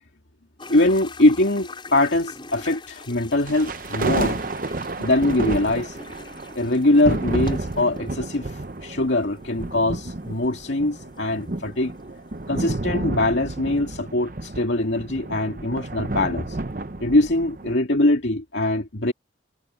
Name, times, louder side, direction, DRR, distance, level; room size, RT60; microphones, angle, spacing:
sound 1, 0.6-12.5, left 4 dB, 25° left, 6.0 m, -45 dB
voice 1, 0.7-4.5 5.0-6.0 6.6-11.9 12.5-16.6 17.0-19.1, left 2 dB, 80° left, 2.2 m, -22 dB
sound 2, 3.5-17.7, right 2 dB, 45° right, 0.9 m, -31 dB
head